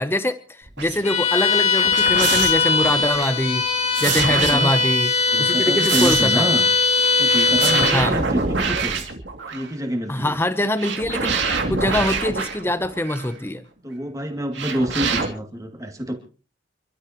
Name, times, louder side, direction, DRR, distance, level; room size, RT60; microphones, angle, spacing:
voice 1, 0.0-5.1 5.4-6.5 7.9-8.2 10.1-11.3 11.7-13.6, left 1 dB, 10° left, 10 dB, 0.8 m, -23 dB
sound 1, 0.7-1.0 1.7-3.3 3.9-5.0 5.5-6.4 7.2-9.7 10.8-13.3 14.5-15.3, right 5 dB, 60° right, 2.6 m, -26 dB
Bowed string instrument, 1.0-8.0, left 4 dB, 35° left, 2.3 m, -20 dB
voice 2, 4.1-4.7 5.3-6.7 7.2-9.0 9.5-10.4 13.8-16.2, equal, 15° right, 3 dB, 2.5 m, -27 dB
29.5 x 12.5 x 3.0 m, 0.37 s
head